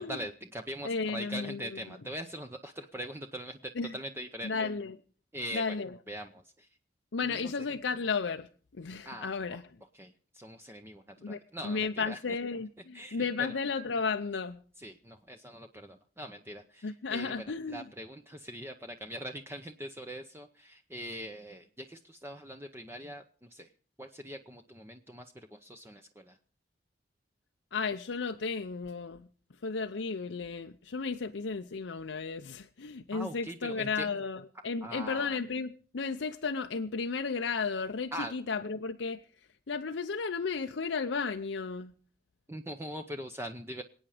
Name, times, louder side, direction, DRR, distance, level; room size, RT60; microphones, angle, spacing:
voice 1, 0.0-4.7 5.3-5.8 6.1-6.7 7.2-7.5 9.0-9.6 9.9-12.4 12.9-13.6 14.8-23.2 23.5-23.7 24.0-26.4 33.1-34.1 34.8-35.4 38.1-38.3 42.5-43.8, equal, 15° right, 6 dB, 0.7 m, -42 dB
voice 2, 0.8-1.6 3.8-3.9 4.4-5.0 5.5-5.9 7.1-8.5 8.8-9.6 11.2-14.6 16.8-17.8 27.7-29.3 29.6-39.2 39.7-41.9, left 4 dB, 80° left, 6 dB, 0.6 m, -34 dB
26.5 x 8.9 x 5.0 m, 0.43 s
head